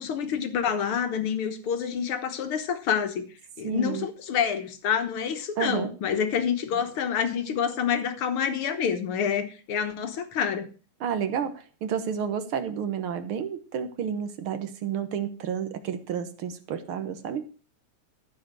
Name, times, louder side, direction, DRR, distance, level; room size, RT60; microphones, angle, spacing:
voice 1, 0.0-3.2 3.6-10.7, left 7 dB, 55° left, 8 dB, 1.9 m, -27 dB
voice 2, 3.6-4.0 5.6-5.9 11.0-17.5, right 8 dB, 60° right, 10 dB, 1.5 m, -30 dB
14.5 x 5.0 x 7.6 m, 0.36 s
omnidirectional pair, 3.5 m